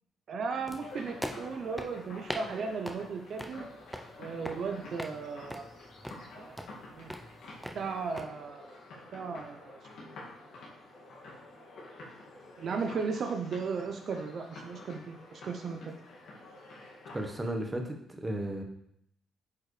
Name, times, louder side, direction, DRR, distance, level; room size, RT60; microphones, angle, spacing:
voice 1, 0.3-3.6 4.2-5.7 6.3-6.6 6.9-7.2 7.7-8.6 9.1-10.1 12.6-15.9, right 5 dB, 60° right, 5 dB, 0.6 m, -36 dB
sound 1, 0.7-8.3, equal, ahead, 0.7 m, -43 dB
sound 2, 0.8-17.4, left 2 dB, 75° left, 2.1 m, -49 dB
voice 2, 17.1-18.6, right 1 dB, 15° right, 3 dB, 1.2 m, -34 dB
8.3 x 4.7 x 3.3 m, 0.70 s
cardioid pair, 90°, 0 cm